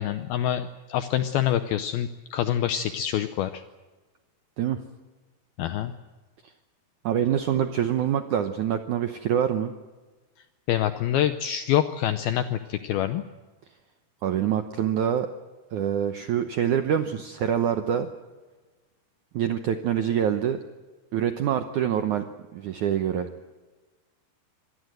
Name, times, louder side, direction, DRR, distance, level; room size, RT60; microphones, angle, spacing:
voice 1, 0.0-3.6 5.6-5.9 10.7-13.2, left 11 dB, 75° left, 10 dB, 2.3 m, -26 dB
voice 2, 7.0-9.7 14.2-15.3 15.7-18.1 19.3-20.6 21.1-22.2 22.5-23.3, right 9 dB, 85° right, 8 dB, 1.7 m, -25 dB
26.0 x 18.5 x 7.9 m, 1.3 s
omnidirectional pair, 5.0 m